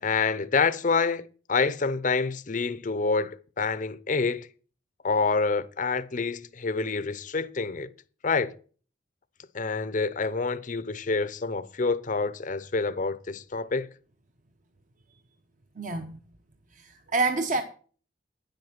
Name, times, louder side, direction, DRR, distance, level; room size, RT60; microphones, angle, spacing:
voice 1, 0.0-4.5 5.0-7.9 8.2-8.5 9.5-13.9, left 4 dB, 45° left, 0.7 m, -27 dB
voice 2, 15.8-16.1 16.7-17.6, right 3 dB, 45° right, 1.0 m, -27 dB
10.0 x 7.9 x 5.8 m
head